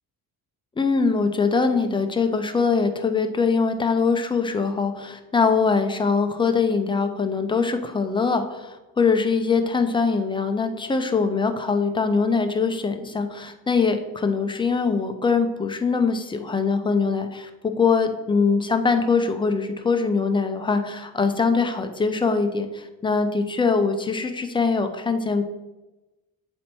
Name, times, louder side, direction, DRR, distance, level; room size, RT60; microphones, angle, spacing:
voice 1, 0.8-25.4, left 4 dB, 15° left, 6 dB, 0.4 m, -22 dB
7.6 x 4.3 x 4.3 m, 1.1 s
cardioid pair, 175°, 35 cm